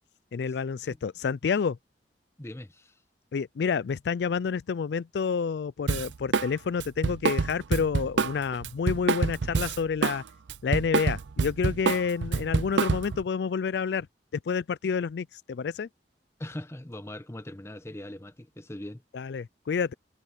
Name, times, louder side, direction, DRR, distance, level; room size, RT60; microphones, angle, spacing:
voice 1, 0.3-1.8 3.3-10.2 10.6-14.1 14.5-15.9 19.1-19.9, left 6 dB, 65° left, 0.4 m, -29 dB
voice 2, 2.4-3.0 16.4-19.0, left 1 dB, 15° left, 0.9 m, -41 dB
Drum kit, 5.9-6.5 6.8-10.2 10.5-13.2, right 4 dB, 80° right, 0.5 m, -26 dB
head